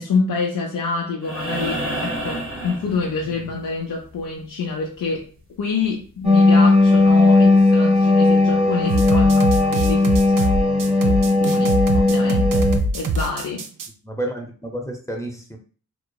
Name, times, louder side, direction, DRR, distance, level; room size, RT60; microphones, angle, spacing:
voice 1, 0.0-5.3 5.6-13.7, left 4 dB, 70° left, 0 dB, 0.5 m, -27 dB
sound 1, 1.2-3.5 5.4-5.5, right 1 dB, 40° right, 0.9 m, -28 dB
sound 2, 6.2-12.8, left 2 dB, 20° right, 1.2 m, -16 dB
sound 3, 8.9-13.9, right 2 dB, 70° right, 0.5 m, -23 dB
voice 2, 14.0-15.6, right 1 dB, 10° left, 2 dB, 0.6 m, -30 dB
2.9 x 2.2 x 2.3 m, 0.40 s
cardioid pair, 40°, 34 cm